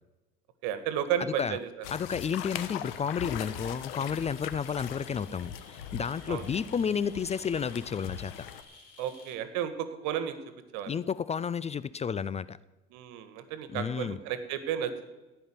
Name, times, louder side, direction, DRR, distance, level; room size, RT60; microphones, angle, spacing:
voice 1, 0.6-1.7 6.3-6.4 9.0-10.4 10.7-10.9 12.9-15.1, right 9 dB, 70° right, 11 dB, 1.7 m, -33 dB
sound 1, 1.8-8.6, left 10 dB, 80° left, 1.1 m, -41 dB
voice 2, 1.9-8.5 10.9-12.6 13.7-14.2, left 7 dB, 20° left, 17 dB, 0.4 m, -31 dB
sound 2, 3.3-9.4, left 3 dB, 55° left, 3.7 m, -55 dB
16.5 x 5.6 x 9.6 m, 1.1 s
hypercardioid pair, 80°, 30 cm